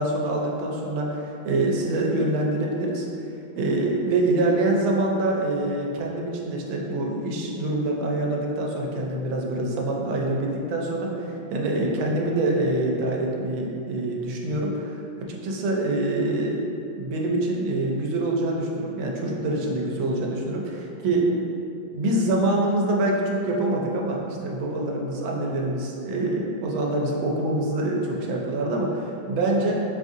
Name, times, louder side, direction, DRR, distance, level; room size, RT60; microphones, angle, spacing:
voice 1, 0.0-3.0 3.6-15.0 15.3-16.7 17.0-21.3 21.9-29.8, right 2 dB, 90° right, -1 dB, 1.4 m, -25 dB
5.3 x 2.6 x 2.4 m, 2.8 s
omnidirectional pair, 2.1 m